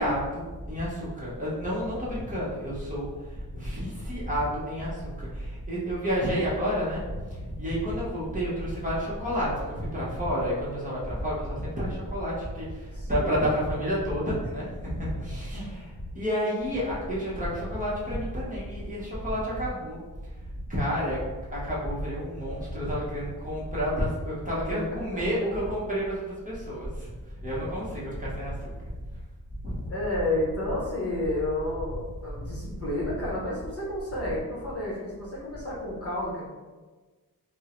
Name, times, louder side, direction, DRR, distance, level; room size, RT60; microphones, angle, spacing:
voice 1, 0.0-20.0 20.7-21.2 21.5-27.1 27.4-28.5 29.6-29.9, equal, 20° right, -8 dB, 0.8 m, -30 dB
voice 2, 12.9-13.3 15.0-15.7 24.7-24.8 25.1-25.2 29.9-36.4, left 1 dB, 40° left, -6 dB, 0.8 m, -31 dB
3.5 x 2.0 x 2.9 m, 1.3 s
wide cardioid pair, 140°, 38 cm